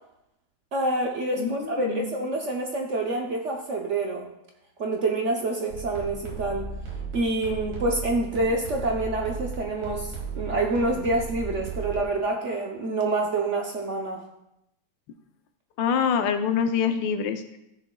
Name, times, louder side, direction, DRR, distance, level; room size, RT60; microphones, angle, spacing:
voice 1, 0.7-4.3 4.8-6.7 7.1-14.2, right 2 dB, 55° right, 1 dB, 0.8 m, -27 dB
voice 2, 1.4-2.1 15.8-17.6, left 7 dB, 85° left, 8 dB, 1.4 m, -25 dB
sound 1, 5.7-12.1, right 4 dB, 75° right, 2.4 m, -36 dB
14.0 x 6.6 x 2.3 m, 0.85 s
omnidirectional pair, 2.0 m